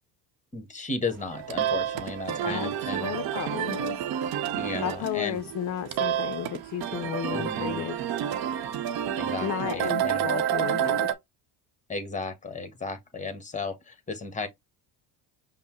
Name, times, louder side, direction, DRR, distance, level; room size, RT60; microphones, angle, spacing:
voice 1, 0.5-3.1 4.5-5.4 7.3-7.8 9.2-10.3 11.9-14.5, left 3 dB, 15° left, 1.1 m, -34 dB
sound 1, 1.2-11.1, right 9 dB, 60° right, 0.7 m, -29 dB
voice 2, 2.3-4.0 4.8-8.0 9.4-11.1, left 11 dB, 45° left, 0.5 m, -33 dB
5.3 x 2.0 x 3.0 m
supercardioid pair, 85°, 42 cm